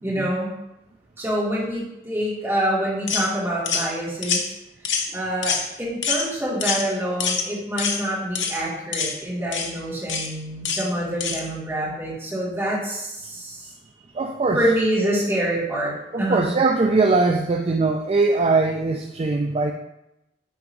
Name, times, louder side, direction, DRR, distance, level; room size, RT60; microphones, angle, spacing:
voice 1, 0.0-0.5 1.2-4.6 5.1-13.7 14.5-16.5, right 1 dB, 15° right, -8 dB, 2.3 m, -26 dB
sound 1, 3.1-3.3 3.7-3.9 4.2-4.4 4.8-5.1 5.4-5.6 6.0-6.2 6.6-6.8 7.2-7.5 7.8-8.0 8.3-8.6 8.9-9.1 9.5-9.7 10.1-10.3 10.6-10.8 11.2-11.4, left 6 dB, 90° left, 0.9 m, -25 dB
voice 2, 14.1-14.6 16.1-19.7, right 3 dB, 35° right, 3 dB, 0.4 m, -21 dB
9.8 x 3.6 x 3.1 m, 0.88 s
head